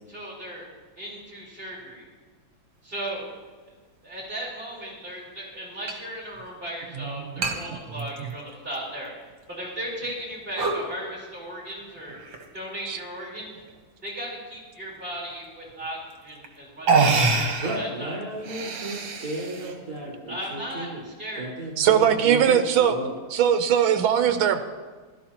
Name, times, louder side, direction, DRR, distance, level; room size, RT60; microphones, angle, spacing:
voice 1, 0.1-0.7 1.0-2.1 2.8-3.2 4.0-9.1 9.5-12.2 12.5-13.5 14.0-18.2 20.3-21.5, right 1 dB, 25° right, -4 dB, 4.2 m, -36 dB
sound 1, 4.2-4.3 5.9-6.0 6.3-6.4 7.4-7.6 8.0-8.8 9.3-9.4 10.0-10.2 10.5-10.9 12.1-12.6 13.4-13.8 15.7-15.8 16.4-16.5 16.9-17.8 18.3-19.7, right 4 dB, 70° right, 2.1 m, -25 dB
voice 2, 7.0-7.8 12.9-13.0 21.8-22.9 23.3-24.6, right 9 dB, 90° right, 8 dB, 1.6 m, -21 dB
voice 3, 17.6-21.0 21.4-23.1, right 2 dB, 45° right, -5 dB, 5.1 m, -33 dB
16.0 x 13.0 x 2.9 m, 1.4 s
omnidirectional pair, 2.2 m